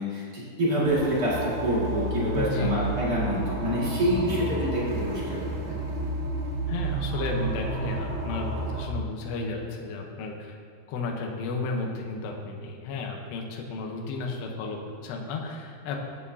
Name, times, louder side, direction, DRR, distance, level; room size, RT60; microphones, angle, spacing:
voice 1, 0.0-5.4 5.7-5.8, equal, 40° right, -7 dB, 1.4 m, -27 dB
sound 1, 0.9-8.9, right 3 dB, 85° right, 3.9 m, -31 dB
voice 2, 2.3-2.8 4.0-4.5 6.7-10.6 10.9-16.0, left 3 dB, 75° left, 0 dB, 3.0 m, -33 dB
14.0 x 9.7 x 2.8 m, 2.3 s
omnidirectional pair, 5.2 m